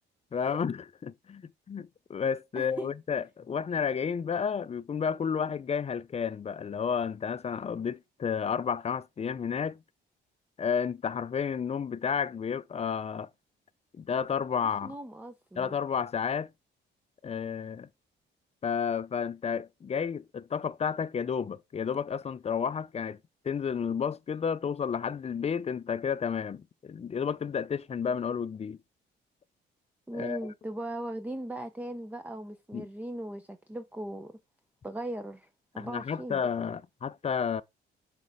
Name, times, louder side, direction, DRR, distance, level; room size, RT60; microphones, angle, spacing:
voice 1, 0.3-9.8 10.6-13.3 13.9-14.9 15.6-16.5 17.2-17.9 18.6-23.2 23.4-28.8 30.1-30.4 32.7-32.9 35.8-37.6, left 7 dB, 30° left, 0.5 m, -31 dB
voice 2, 2.6-2.9 14.8-15.7 30.1-34.3 34.8-35.5 35.7-36.4, right 1 dB, 10° right, 0.6 m, -38 dB
6.3 x 4.2 x 3.5 m
cardioid pair, 90°, 20 cm